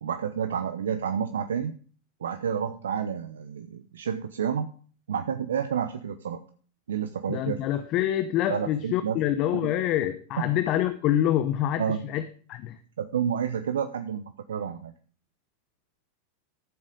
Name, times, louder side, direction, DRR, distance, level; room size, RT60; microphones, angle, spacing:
voice 1, 0.0-1.7 2.2-4.7 5.1-6.4 6.9-7.6 8.5-9.2 9.5-9.7 10.4-10.5 11.8-12.1 13.0-14.9, right 8 dB, 75° right, 0.9 m, -30 dB
voice 2, 7.3-12.8, left 12 dB, 45° left, 1.0 m, -26 dB
14.0 x 7.5 x 5.1 m
hypercardioid pair, 90°, 0 cm